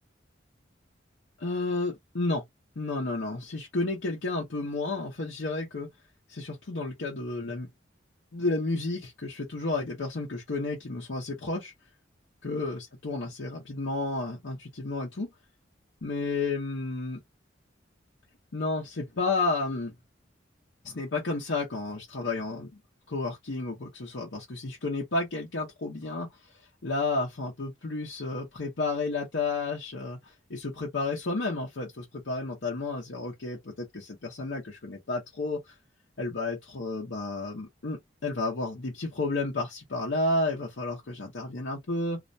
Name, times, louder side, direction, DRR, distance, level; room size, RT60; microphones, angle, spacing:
voice 1, 1.4-2.4 2.8-5.9 6.3-7.7 8.3-11.7 12.4-15.3 16.0-17.2 18.5-19.9 20.8-22.8 23.1-26.3 26.8-35.6 36.2-42.2, left 3 dB, 70° left, 0.8 m, -31 dB
2.4 x 2.1 x 2.6 m
head